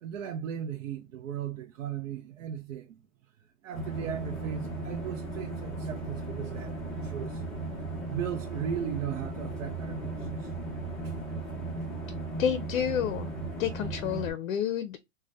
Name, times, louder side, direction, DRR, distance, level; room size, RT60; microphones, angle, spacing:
voice 1, 0.0-3.0 3.6-7.4 8.0-10.5 11.0-11.2, right 9 dB, 70° right, 0.5 m, -37 dB
sound 1, 3.7-14.3, right 2 dB, ahead, 0.6 m, -36 dB
voice 2, 12.4-13.3 13.6-15.0, left 9 dB, 80° left, 0.5 m, -29 dB
2.5 x 2.1 x 3.2 m
hypercardioid pair, 145°, 39 cm